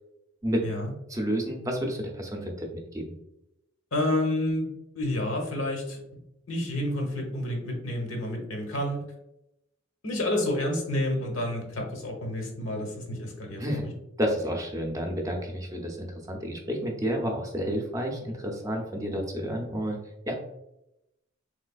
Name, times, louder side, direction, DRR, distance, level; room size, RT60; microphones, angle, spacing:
voice 1, 1.1-3.1 13.6-13.8 14.2-20.0 20.3-20.4, equal, 15° right, 1 dB, 0.5 m, -30 dB
voice 2, 3.9-4.7 4.9-6.0 6.5-9.0 10.0-13.9, left 1 dB, 90° left, 1 dB, 1.0 m, -29 dB
3.3 x 3.1 x 2.3 m, 0.85 s
head